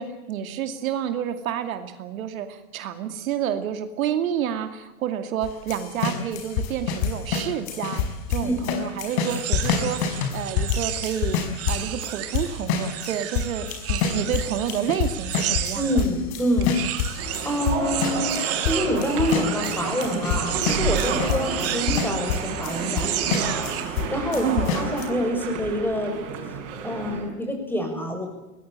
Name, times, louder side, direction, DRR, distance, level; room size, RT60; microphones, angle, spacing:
voice 1, 0.0-11.4 11.7-15.9 24.4-24.7, right 9 dB, 75° right, 8 dB, 2.5 m, -29 dB
sound 1, 5.4-24.1 24.3-25.1, left 7 dB, 55° left, 5.7 m, -27 dB
sound 2, 9.1-16.1 16.6-23.9, right 12 dB, 35° right, 2.6 m, -32 dB
voice 2, 15.7-26.2 26.8-28.3, equal, 5° left, 4 dB, 6.8 m, -27 dB
sound 3, 17.2-27.3, right 6 dB, 60° right, 6.4 m, -31 dB
22.0 x 20.5 x 8.9 m, 0.99 s
hypercardioid pair, 130°, 42 cm